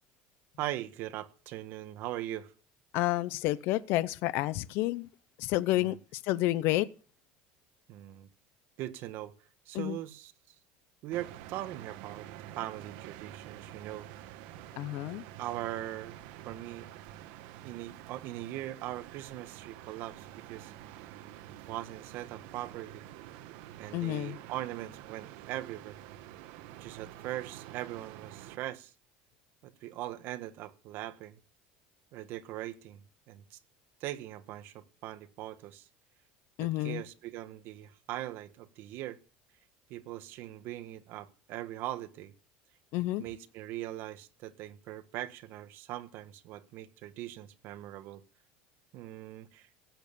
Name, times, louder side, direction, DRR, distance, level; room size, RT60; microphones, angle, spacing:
voice 1, 0.6-2.5 5.7-6.0 7.9-8.3 8.8-9.3 9.6-10.5 11.0-12.3 12.5-14.1 15.4-16.9 17.6-20.7 21.7-23.1 23.8-26.0 26.8-28.9 29.6-31.4 32.1-33.0 33.3-33.6 34.0-35.9 36.6-39.2 39.9-42.3 43.2-48.2 48.9-49.7, right 14 dB, 55° right, 1.5 m, -40 dB
voice 2, 2.9-5.1 5.4-6.9 9.7-10.0 14.8-15.2 23.9-24.4 36.6-37.0 42.9-43.2, left 17 dB, 60° left, 0.8 m, -30 dB
sound 1, 11.1-28.6, right 13 dB, 70° right, 1.4 m, -48 dB
16.5 x 9.0 x 6.9 m
cardioid pair, 150°, 4 cm